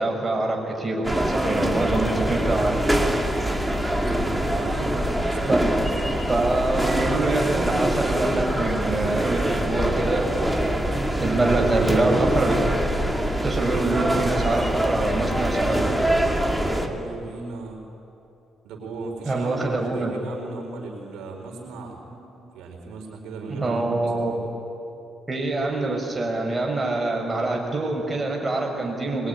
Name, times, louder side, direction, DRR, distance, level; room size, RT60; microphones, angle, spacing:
voice 1, 0.0-2.8 5.5-5.6 6.3-10.3 11.2-12.6 13.4-15.9 19.2-20.1 22.1-22.5 23.5-24.3 25.3-29.3, right 2 dB, 20° right, 1 dB, 6.0 m, -25 dB
sound 1, 1.0-16.9, right 1 dB, 5° right, 2.4 m, -24 dB
voice 2, 4.4-5.6 16.8-17.8 18.6-22.0 22.5-24.5, right 3 dB, 90° right, 1 dB, 4.1 m, -36 dB
22.0 x 21.5 x 9.9 m, 2.8 s
cardioid pair, 90°, 0 cm